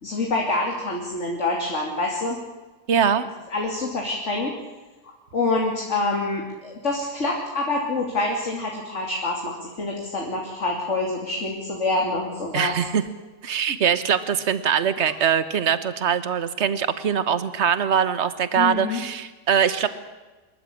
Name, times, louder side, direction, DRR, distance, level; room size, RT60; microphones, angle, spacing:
voice 1, 0.0-2.4 3.5-4.5 5.3-12.7 18.6-19.0, left 2 dB, 45° left, 0 dB, 3.2 m, -26 dB
voice 2, 2.9-3.3 12.5-13.0 13.4-19.9, right 8 dB, 50° right, 13 dB, 1.4 m, -22 dB
26.0 x 14.0 x 9.9 m, 1.2 s
omnidirectional pair, 1.7 m